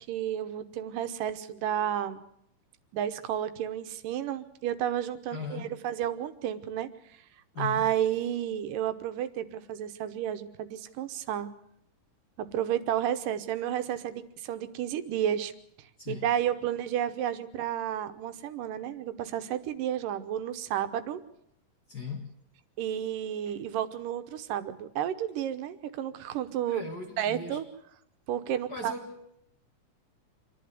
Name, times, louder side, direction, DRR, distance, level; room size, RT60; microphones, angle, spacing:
voice 1, 0.1-2.2 2.9-6.9 7.6-11.5 12.4-15.5 16.1-21.2 22.8-26.8 27.2-27.6 28.3-28.9, right 10 dB, 90° right, 2.7 m, -31 dB
voice 2, 5.3-5.8 7.5-7.9 16.0-16.3 21.9-22.4 23.5-23.6 26.7-27.6 28.7-29.4, left 5 dB, 40° left, 1.6 m, -39 dB
26.0 x 11.0 x 9.6 m
omnidirectional pair, 3.7 m